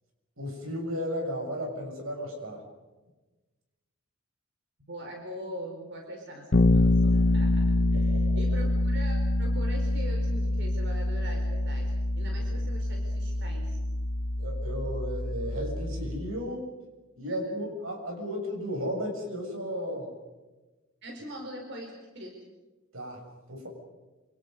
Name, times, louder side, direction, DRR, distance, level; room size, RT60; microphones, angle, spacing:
voice 1, 0.4-2.6 7.9-8.6 14.4-16.7 17.2-20.1 22.9-23.7, equal, 85° right, 2 dB, 7.2 m, -34 dB
voice 2, 4.9-13.8 17.3-17.4 21.0-22.3, equal, 60° right, 1 dB, 4.7 m, -42 dB
Bass guitar, 6.5-16.3, left 2 dB, 55° left, 1.1 m, -26 dB
27.5 x 27.0 x 5.4 m, 1.2 s
head